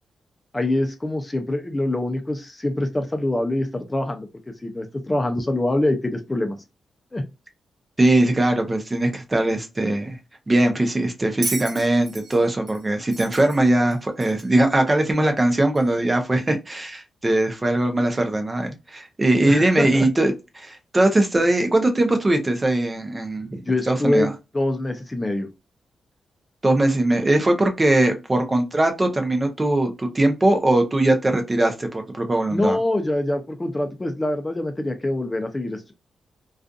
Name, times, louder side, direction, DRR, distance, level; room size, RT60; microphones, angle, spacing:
voice 1, 0.5-4.3 4.6-6.6 7.1-7.2 19.5-20.1 23.6-25.5 32.5-35.9, left 1 dB, 20° left, 0.5 m, -24 dB
voice 2, 8.0-10.2 10.5-23.6 23.9-24.3 26.6-32.8, right 1 dB, 25° right, 0.6 m, -20 dB
Bell, 11.4-14.6 15.8-15.9, right 3 dB, 55° right, 0.9 m, -34 dB
2.4 x 2.4 x 2.4 m
cardioid pair, 85°, 0 cm